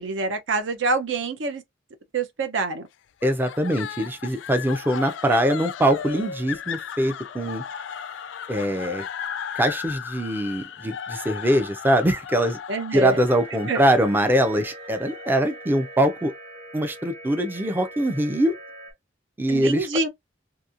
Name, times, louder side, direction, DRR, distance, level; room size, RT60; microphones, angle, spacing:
voice 1, 0.0-1.6 2.1-2.8 12.7-13.2 13.7-13.8 19.5-20.1, right 3 dB, 75° right, 0.6 m, -26 dB
sound 1, 3.2-16.4, left 8 dB, 75° left, 0.3 m, -36 dB
voice 2, 3.2-7.6 8.5-9.0 9.6-12.6 12.9-16.3 16.7-18.5 19.4-19.9, right 1 dB, 10° right, 0.4 m, -23 dB
sound 2, 13.3-18.9, right 2 dB, 45° right, 1.0 m, -42 dB
2.8 x 2.6 x 2.4 m
head